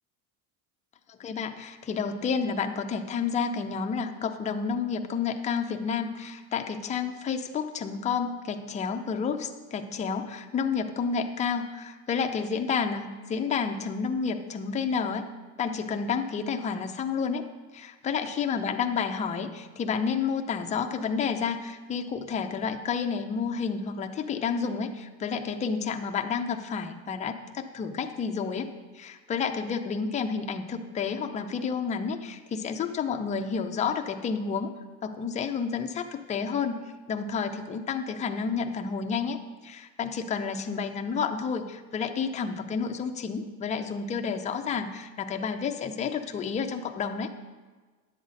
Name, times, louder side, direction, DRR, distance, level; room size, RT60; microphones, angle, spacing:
voice 1, 1.1-15.3 15.6-17.5 17.7-34.7 35.0-36.8 37.1-47.3, left 6 dB, 15° left, 5 dB, 0.4 m, -30 dB
10.5 x 7.7 x 4.0 m, 1.4 s
cardioid pair, 140°, 45 cm